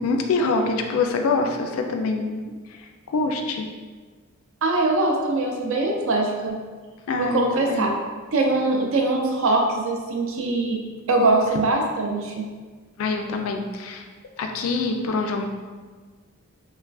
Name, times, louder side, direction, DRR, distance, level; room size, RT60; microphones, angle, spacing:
voice 1, 0.0-2.4 2.7-3.7 7.1-7.9 13.0-14.1 14.4-15.5, left 3 dB, 65° left, 4 dB, 0.3 m, -25 dB
voice 2, 4.6-6.6 7.2-7.9 8.3-10.8 11.1-12.5, right 2 dB, 60° right, 1 dB, 0.4 m, -22 dB
3.2 x 2.4 x 2.3 m, 1.4 s
head